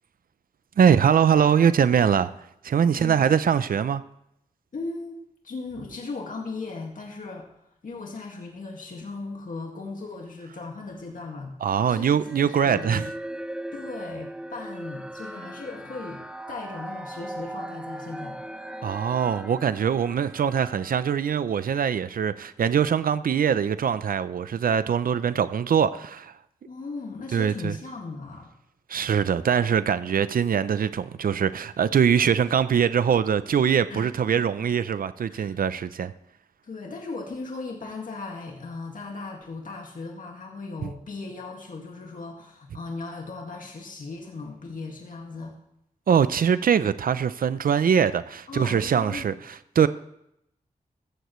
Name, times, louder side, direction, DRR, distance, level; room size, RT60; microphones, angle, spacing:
voice 1, 0.8-2.3 2.6-4.0 11.6-13.1 18.8-26.3 27.3-27.7 28.9-36.1 46.1-49.3 49.8-49.9, right 7 dB, 90° right, 0.5 m, -22 dB
voice 2, 2.9-3.3 4.7-5.2 5.4-7.6 7.8-11.6 11.9-13.1 13.7-18.4 26.6-28.5 33.9-34.5 35.3-35.5 36.6-45.6 48.5-49.3, left 3 dB, 70° left, 1.9 m, -37 dB
sound 1, 12.2-21.8, right 1 dB, 5° right, 0.6 m, -39 dB
15.0 x 14.5 x 3.1 m
wide cardioid pair, 110°, 14 cm